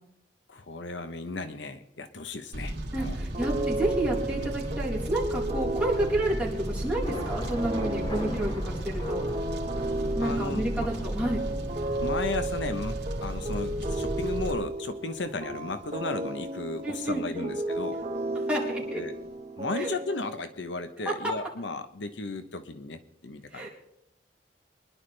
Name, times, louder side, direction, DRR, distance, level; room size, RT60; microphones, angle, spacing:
voice 1, 0.5-2.8 3.0-3.2 10.2-10.9 12.0-18.0 18.9-19.1 19.6-23.7, left 3 dB, 80° left, 9 dB, 1.0 m, -35 dB
Fire, 2.5-14.5, right 1 dB, 65° right, 2.5 m, -34 dB
voice 2, 2.9-9.2 10.2-11.4 16.8-17.5 18.5-19.0 19.8-19.9 23.5-23.7, right 1 dB, 5° right, -5 dB, 4.0 m, -30 dB
sound 1, 3.3-20.5, right 2 dB, 35° right, 1.2 m, -34 dB
Thunder / Rain, 5.8-19.4, equal, 30° left, 3.8 m, -44 dB
24.0 x 11.0 x 3.4 m, 0.77 s
head